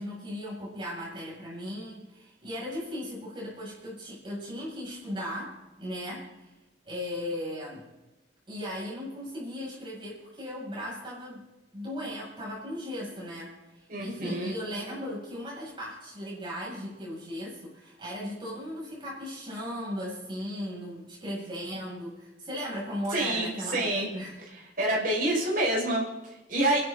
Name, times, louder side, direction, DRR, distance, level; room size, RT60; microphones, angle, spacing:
voice 1, 0.0-6.3 6.8-7.9 8.5-11.5 11.7-24.4, equal, 25° right, -4 dB, 7.3 m, -37 dB
voice 2, 13.9-14.5 23.1-24.1 24.8-26.8, right 1 dB, 50° right, -3 dB, 5.7 m, -27 dB
30.0 x 11.5 x 4.0 m, 1.0 s
head